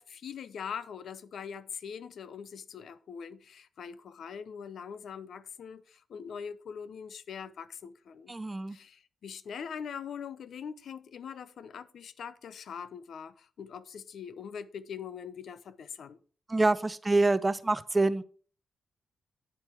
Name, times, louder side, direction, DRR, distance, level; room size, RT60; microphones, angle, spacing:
voice 1, 0.0-8.3 8.7-16.2, left 7 dB, 70° left, 0.7 m, -42 dB
voice 2, 8.3-8.8 16.5-18.2, right 2 dB, 20° right, 0.5 m, -26 dB
9.2 x 7.6 x 4.5 m
wide cardioid pair, 125°, 0 cm